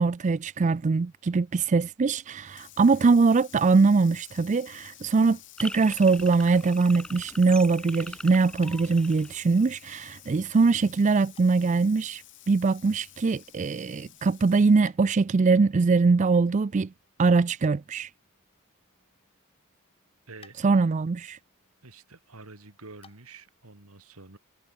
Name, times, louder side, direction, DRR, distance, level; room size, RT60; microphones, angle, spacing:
voice 1, 0.0-16.9 17.2-18.1 20.6-21.4, right 4 dB, 35° right, 0.4 m, -22 dB
Water tap faucet / Sink (filling or washing), 2.4-14.9, left 15 dB, 55° left, 3.5 m, -52 dB
sound 1, 5.6-10.1, left 1 dB, 5° left, 0.6 m, -41 dB
sound 2, 7.9-23.5, left 5 dB, 25° left, 5.8 m, -62 dB
voice 2, 20.3-20.6 21.8-24.4, right 3 dB, 75° right, 2.7 m, -48 dB
head